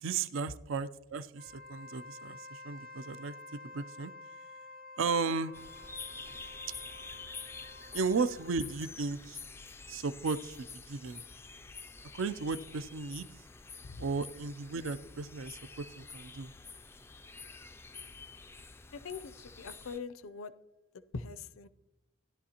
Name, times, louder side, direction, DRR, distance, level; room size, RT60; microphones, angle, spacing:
voice 1, 0.0-4.1 5.0-5.5 7.9-9.4 9.9-11.2 12.1-13.3 14.0-16.5, right 4 dB, 65° right, 14 dB, 0.5 m, -35 dB
Wind instrument woodwind instrument, 1.3-8.8, left 2 dB, 45° right, 0.8 m, -50 dB
sound 1, 5.5-20.0, left 4 dB, 10° left, 0.3 m, -48 dB
voice 2, 18.9-20.5 21.1-21.7, left 4 dB, 70° left, 13 dB, 0.5 m, -42 dB
16.0 x 11.0 x 2.9 m, 1.0 s
head